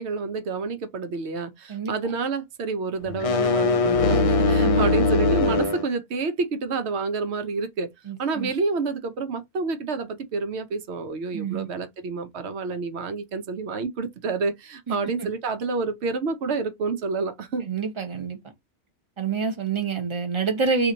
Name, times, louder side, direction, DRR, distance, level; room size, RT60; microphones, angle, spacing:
voice 1, 0.0-7.9 8.2-17.7, right 4 dB, 80° right, 1.0 m, -29 dB
sound 1, 3.1-5.9, left 3 dB, 60° left, 0.3 m, -21 dB
voice 2, 4.6-4.9 8.1-8.5 11.3-11.7 14.9-15.3 17.7-18.4 19.2-20.9, right 5 dB, 30° right, 0.8 m, -27 dB
2.9 x 2.5 x 3.8 m
omnidirectional pair, 1.1 m